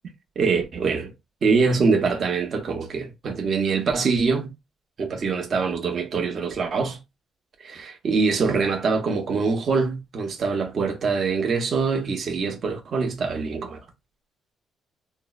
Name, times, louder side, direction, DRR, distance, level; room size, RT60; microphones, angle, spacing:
voice 1, 0.4-1.1 1.4-4.5 5.0-7.0 7.7-13.8, right 4 dB, 50° right, 0.9 m, -24 dB
3.7 x 2.1 x 2.3 m
cardioid pair, 90°, 0 cm